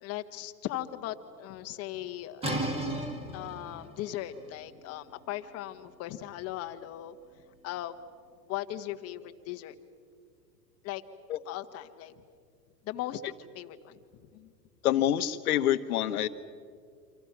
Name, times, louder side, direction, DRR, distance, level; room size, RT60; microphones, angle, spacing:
voice 1, 0.0-2.5 3.3-7.1 7.6-8.0 8.5-9.7 10.8-11.0 11.5-12.1 12.8-13.2 13.5-14.0 14.3-14.5, left 13 dB, 30° left, 8 dB, 1.3 m, -38 dB
sound 1, 2.4-8.0, right 1 dB, 10° right, 2.6 m, -38 dB
voice 2, 14.8-16.3, left 12 dB, 60° left, 11 dB, 1.3 m, -26 dB
28.5 x 26.0 x 6.0 m, 2.1 s
hypercardioid pair, 125°, 50 cm